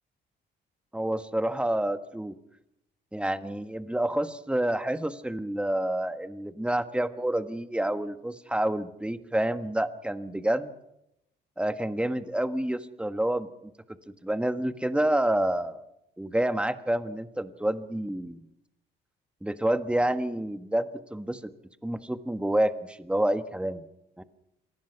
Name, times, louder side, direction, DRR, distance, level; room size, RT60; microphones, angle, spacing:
voice 1, 0.9-2.4 3.1-10.7 11.6-13.5 14.2-15.8 16.2-18.4 19.4-21.5 21.8-23.8 24.2-24.3, right 1 dB, 5° right, 9 dB, 1.5 m, -28 dB
26.0 x 19.5 x 5.9 m, 0.84 s
cardioid pair, 90°, 20 cm